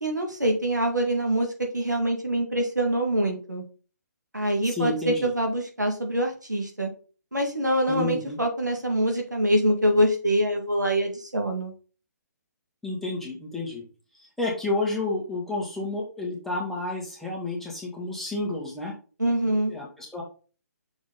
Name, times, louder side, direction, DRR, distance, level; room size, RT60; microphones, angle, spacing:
voice 1, 0.0-3.6 4.3-6.9 7.3-11.7 19.2-19.7, right 1 dB, 85° right, 2 dB, 2.1 m, -25 dB
voice 2, 4.7-5.3 7.9-8.4 12.8-13.8 14.1-19.0 19.5-20.2, left 2 dB, 5° left, -3 dB, 1.7 m, -30 dB
6.2 x 4.6 x 4.0 m, 0.37 s
figure-of-eight pair, 135°, 9 cm